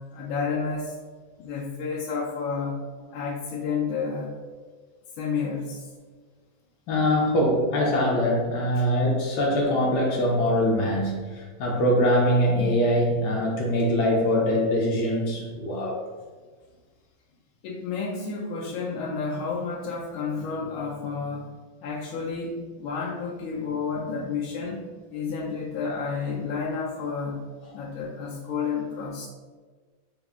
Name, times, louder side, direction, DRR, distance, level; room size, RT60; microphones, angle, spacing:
voice 1, 0.1-0.9 1.4-2.8 3.1-4.3 5.2-5.9 8.7-8.8 17.6-21.5 21.8-24.8 25.1-27.4 27.7-29.3, left 5 dB, 90° left, -4 dB, 1.4 m, -30 dB
voice 2, 6.9-16.0, equal, 70° left, -1 dB, 1.0 m, -23 dB
4.5 x 2.0 x 3.4 m, 1.4 s
omnidirectional pair, 2.2 m